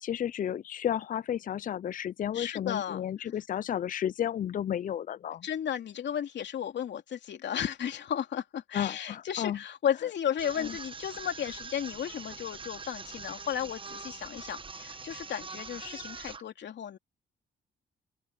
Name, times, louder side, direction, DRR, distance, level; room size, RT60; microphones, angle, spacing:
voice 1, 0.0-5.4 8.7-9.6 10.6-10.7, left 10 dB, 45° left, 0.5 m, -32 dB
voice 2, 2.3-3.3 5.4-17.0, left 9 dB, 65° left, 3.0 m, -34 dB
sound 1, 10.4-16.4, right 4 dB, 25° right, 1.1 m, -43 dB
open air
cardioid pair, 90°, 20 cm